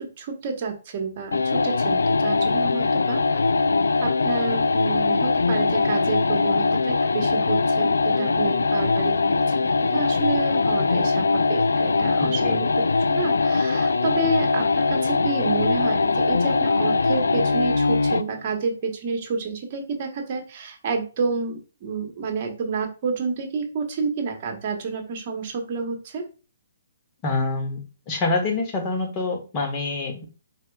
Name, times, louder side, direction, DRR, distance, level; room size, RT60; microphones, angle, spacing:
voice 1, 0.0-3.4 4.0-26.2, right 4 dB, 45° right, 4 dB, 1.3 m, -30 dB
sound 1, 1.3-18.3, left 4 dB, 90° left, 0.3 m, -21 dB
voice 2, 12.2-12.6 27.2-27.8 28.1-30.2, left 3 dB, 25° left, 1 dB, 1.2 m, -26 dB
4.7 x 4.3 x 2.4 m, 0.33 s
hypercardioid pair, 145°, 0 cm